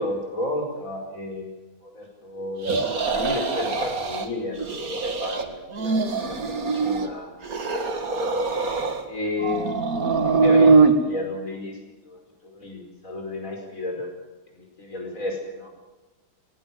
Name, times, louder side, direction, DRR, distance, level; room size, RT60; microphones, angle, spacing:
voice 1, 0.0-1.5 1.8-7.3 8.0-8.4 9.0-9.9 10.2-11.8 12.1-14.1 14.5-15.7, left 2 dB, 50° left, 2 dB, 5.4 m, -32 dB
sound 1, 2.6-4.3 4.6-5.4 5.7-7.1 7.4-9.1 9.4-10.9, right 4 dB, 55° right, 2.4 m, -22 dB
19.5 x 18.5 x 9.1 m, 1.1 s
omnidirectional pair, 1.8 m